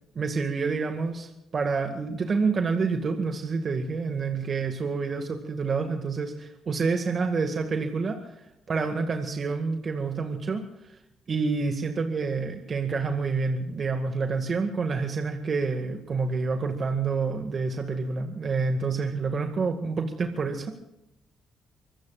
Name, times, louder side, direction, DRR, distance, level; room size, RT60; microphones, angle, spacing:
voice 1, 0.2-11.0 11.3-20.7, right 4 dB, 45° right, 4 dB, 2.0 m, -28 dB
25.0 x 20.5 x 2.5 m, 0.89 s
cardioid pair, 90°, 0 cm